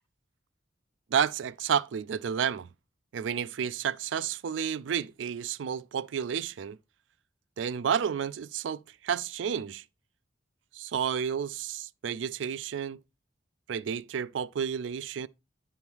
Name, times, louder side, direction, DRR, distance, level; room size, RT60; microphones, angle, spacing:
voice 1, 1.1-2.7 3.1-6.8 7.6-9.8 10.7-13.0 13.7-15.3, right 7 dB, 85° right, 0.4 m, -31 dB
10.5 x 3.5 x 4.6 m
head